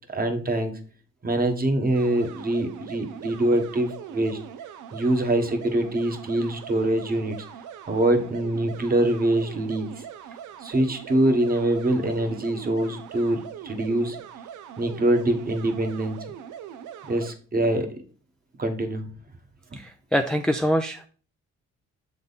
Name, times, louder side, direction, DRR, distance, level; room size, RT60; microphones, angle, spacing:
voice 1, 0.1-0.8 1.2-4.4 4.9-7.3 7.9-9.9 10.6-14.2 14.8-16.2 17.1-18.0 18.6-19.1, right 1 dB, 30° right, 5 dB, 1.2 m, -24 dB
sound 1, 1.9-17.3, right 9 dB, 75° right, 0.7 m, -41 dB
voice 2, 19.7-21.1, equal, 5° left, 5 dB, 0.4 m, -24 dB
7.1 x 3.6 x 4.0 m, 0.41 s
cardioid pair, 90°, 30 cm